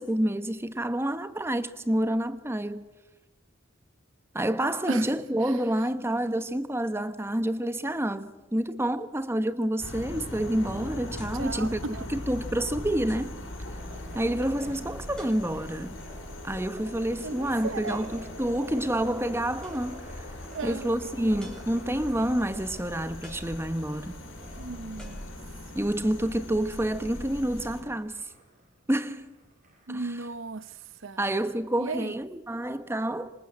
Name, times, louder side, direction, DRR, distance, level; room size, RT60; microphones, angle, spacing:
voice 1, 0.0-2.8 4.3-11.8 12.1-13.3 14.1-16.0 16.4-20.3 20.6-24.2 25.7-28.2 28.9-29.3 29.9-30.1 31.2-33.3, right 1 dB, 10° right, 1.1 m, -28 dB
sound 1, 9.8-27.8, left 1 dB, 80° left, 6.0 m, -40 dB
sound 2, 11.2-11.5 12.2-12.3 13.1-13.4 15.2-15.8 17.9-18.3 19.6-20.1 21.4-22.1 23.2-24.1 25.0-25.8, equal, 5° left, 5.7 m, -52 dB
voice 2, 11.3-12.1 17.2-18.1 20.5-20.9 24.6-25.3 29.9-31.2 31.7-32.2, right 4 dB, 75° right, 0.8 m, -36 dB
sound 3, 13.7-31.5, equal, 45° right, 5.2 m, -51 dB
26.0 x 26.0 x 7.6 m
head